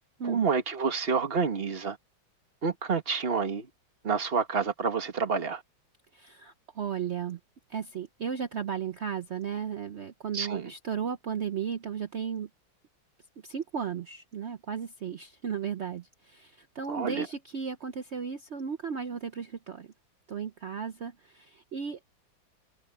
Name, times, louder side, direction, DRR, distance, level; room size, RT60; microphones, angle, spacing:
voice 1, 0.2-2.0 2.6-3.7 4.0-5.6 10.3-10.7 16.9-17.3, right 5 dB, 30° right, 1.7 m, -28 dB
voice 2, 6.1-7.4 7.7-12.5 13.4-19.9 20.3-22.2, right 7 dB, 80° right, 0.6 m, -35 dB
omnidirectional pair, 2.1 m